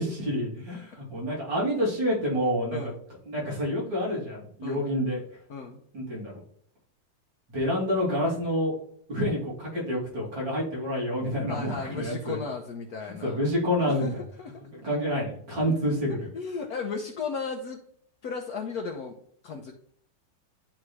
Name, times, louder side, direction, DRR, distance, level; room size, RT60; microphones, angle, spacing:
voice 1, 0.0-2.8 3.3-5.2 5.9-6.3 7.5-8.8 9.1-12.4 13.2-14.1 14.7-16.2, equal, 85° right, -6 dB, 3.5 m, -28 dB
voice 2, 2.4-3.0 4.6-4.8 5.5-5.8 11.5-13.4 13.9-14.1 14.4-14.6 15.6-17.8 18.2-19.2 19.4-19.7, left 5 dB, 65° left, 2 dB, 1.1 m, -35 dB
10.5 x 3.6 x 3.2 m, 0.64 s
omnidirectional pair, 2.0 m